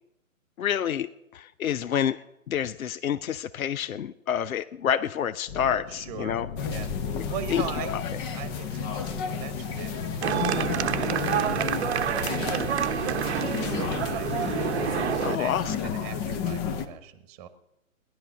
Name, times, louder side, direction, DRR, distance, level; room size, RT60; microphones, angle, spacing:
voice 1, 0.6-2.2 2.5-6.5 7.1-7.2 7.5-7.6 7.9-8.1 15.2-15.7, left 9 dB, 75° left, 14 dB, 0.8 m, -28 dB
sound 1, 5.5-14.0, left 6 dB, 40° left, 1.3 m, -42 dB
voice 2, 5.9-6.4 6.7-7.9 8.3-11.9 12.5-17.5, right 10 dB, 30° right, 11 dB, 1.2 m, -41 dB
sound 2, 6.6-16.9, left 6 dB, 15° left, 0.7 m, -32 dB
sound 3, 10.2-15.4, right 9 dB, 50° right, 1.0 m, -28 dB
19.0 x 11.5 x 5.8 m, 0.89 s
hypercardioid pair, 145°, 42 cm